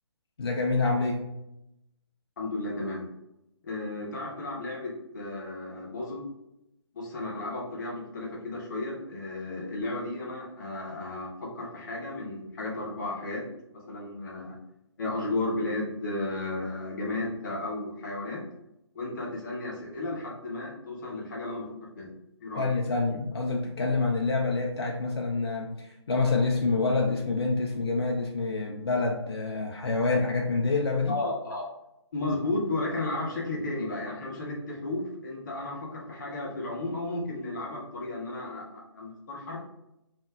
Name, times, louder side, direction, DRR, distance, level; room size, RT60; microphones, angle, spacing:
voice 1, 0.4-1.2 22.6-31.2, left 3 dB, 60° left, 0 dB, 0.5 m, -27 dB
voice 2, 2.4-3.1 3.6-6.3 6.9-13.5 13.7-14.6 15.0-18.4 18.9-22.1 22.4-22.7 31.1-31.7 32.1-39.6, left 2 dB, 40° left, -2 dB, 1.0 m, -34 dB
5.3 x 2.6 x 2.3 m, 0.88 s
figure-of-eight pair, 140°, 15 cm